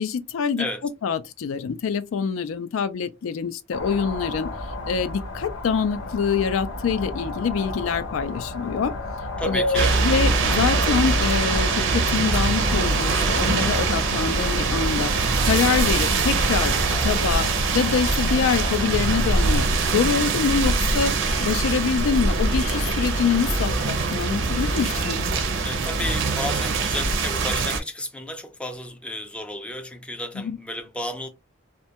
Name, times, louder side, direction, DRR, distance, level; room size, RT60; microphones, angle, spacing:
voice 1, 0.0-0.7 1.0-4.5 4.9-8.9 9.4-15.1 15.4-16.8 17.0-17.5 17.7-25.2 30.4-30.6, left 6 dB, 90° left, 0.4 m, -25 dB
sound 1, 3.7-19.7, left 2 dB, 75° left, 0.8 m, -32 dB
voice 2, 9.4-10.0 25.6-31.3, left 1 dB, 5° left, 0.3 m, -32 dB
sound 2, 9.7-27.8, right 3 dB, 65° right, 0.5 m, -23 dB
sound 3, 21.0-27.5, left 2 dB, 35° left, 0.7 m, -40 dB
2.2 x 2.1 x 2.7 m
head